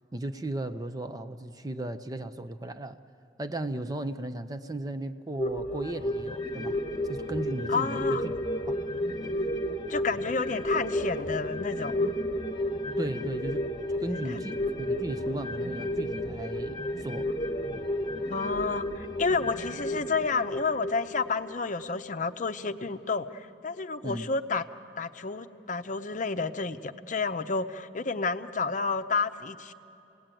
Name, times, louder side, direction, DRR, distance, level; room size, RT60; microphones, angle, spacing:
voice 1, 0.1-3.0 3.4-6.8 7.0-8.4 8.7-8.8 13.0-13.7 14.0-17.3 17.6-17.8 24.0-24.3, right 1 dB, 20° right, 0.6 m, -36 dB
sound 1, 5.4-22.2 22.5-22.6, left 1 dB, 25° left, 1.3 m, -32 dB
voice 2, 7.7-8.2 9.9-12.1 14.0-14.4 18.3-24.6 25.0-29.7, left 4 dB, 45° left, 0.7 m, -30 dB
29.0 x 18.5 x 9.0 m
head